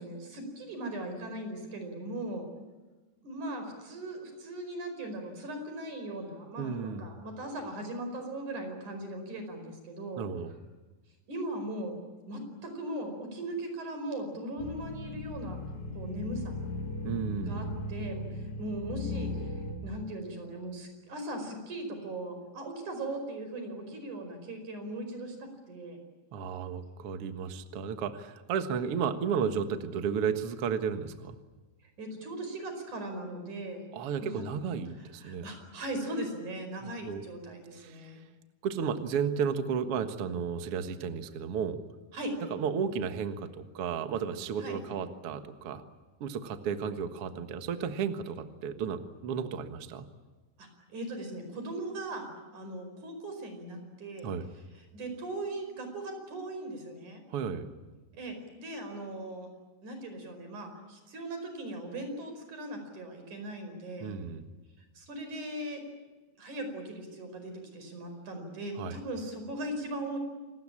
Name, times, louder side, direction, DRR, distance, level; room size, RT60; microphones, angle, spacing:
voice 1, 0.0-2.5 3.2-10.3 11.3-12.0 12.3-15.6 15.9-16.7 17.4-19.5 19.8-26.0 32.0-33.9 34.2-34.4 35.0-38.2 42.1-42.3 44.6-44.8 50.6-54.3 54.7-57.2 58.1-59.5 59.8-64.1 64.9-65.8 66.4-70.2, right 1 dB, 45° right, 6 dB, 6.2 m, -39 dB
voice 2, 6.6-7.1 10.2-10.5 17.0-17.7 26.3-31.4 33.9-35.5 36.8-37.2 37.8-38.0 38.6-41.8 42.5-45.8 46.2-50.0 54.2-54.5 57.3-57.7 64.0-64.4 68.8-69.0, right 7 dB, 90° right, 8 dB, 1.2 m, -33 dB
sound 1, 14.6-19.7, left 2 dB, 45° left, 3.9 m, -37 dB
28.0 x 20.0 x 8.8 m, 1.2 s
omnidirectional pair, 5.1 m